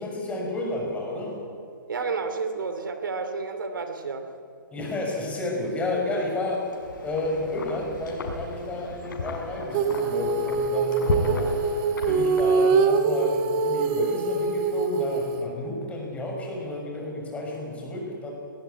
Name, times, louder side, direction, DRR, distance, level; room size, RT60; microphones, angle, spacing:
voice 1, 0.0-1.4 4.7-6.7 7.0-11.5 12.1-18.3, left 2 dB, 10° left, -1 dB, 6.5 m, -31 dB
voice 2, 1.9-4.3, right 4 dB, 70° right, 7 dB, 2.6 m, -31 dB
Wind, 6.5-13.0, left 4 dB, 60° left, 5.8 m, -35 dB
Female singing, 9.7-15.5, right 4 dB, 30° right, 1.6 m, -24 dB
20.5 x 20.5 x 9.5 m, 2.3 s
hypercardioid pair, 135°, 11 cm